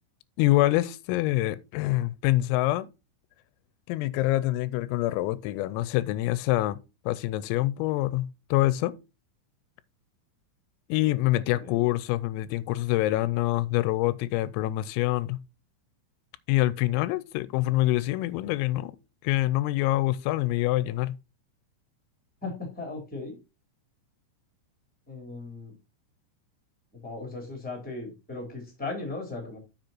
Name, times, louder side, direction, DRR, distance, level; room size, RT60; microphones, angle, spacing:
voice 1, 0.4-2.9 3.9-6.8 7.1-8.9 10.9-15.4 16.5-19.0 19.2-21.2, left 17 dB, 90° left, 3.3 m, -25 dB
voice 2, 22.4-23.3 25.1-25.7 26.9-29.6, left 3 dB, ahead, 2.8 m, -37 dB
7.8 x 6.6 x 4.4 m
omnidirectional pair, 5.9 m